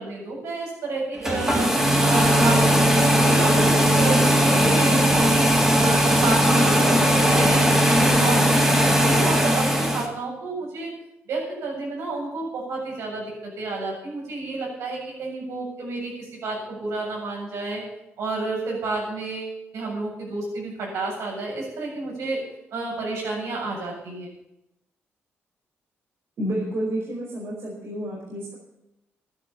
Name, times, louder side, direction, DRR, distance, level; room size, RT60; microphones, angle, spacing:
voice 1, 0.0-11.0 11.3-17.8 18.2-22.4 22.7-24.3, right 3 dB, 85° right, -2 dB, 7.7 m, -30 dB
sound 1, 1.2-10.1, equal, 10° right, 3.3 m, -18 dB
voice 2, 26.4-28.5, right 1 dB, 60° right, -4 dB, 5.1 m, -30 dB
12.5 x 12.0 x 7.3 m, 0.86 s
cardioid pair, 95°, 5 cm